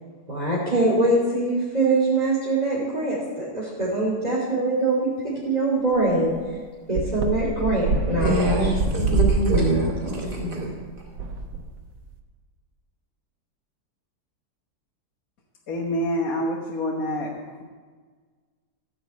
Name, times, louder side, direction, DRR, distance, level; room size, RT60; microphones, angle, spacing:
voice 1, 0.3-6.3 6.9-8.7 10.0-10.1, right 2 dB, 25° right, -7 dB, 2.9 m, -23 dB
sound 1, 5.9-6.0 6.3-6.4 7.0-12.1, right 4 dB, 90° right, 1.9 m, -25 dB
voice 2, 8.2-10.7, right 1 dB, 70° right, -1 dB, 3.2 m, -24 dB
voice 3, 15.7-17.6, equal, 55° left, -1 dB, 1.6 m, -27 dB
15.0 x 6.0 x 8.3 m, 1.5 s
omnidirectional pair, 1.8 m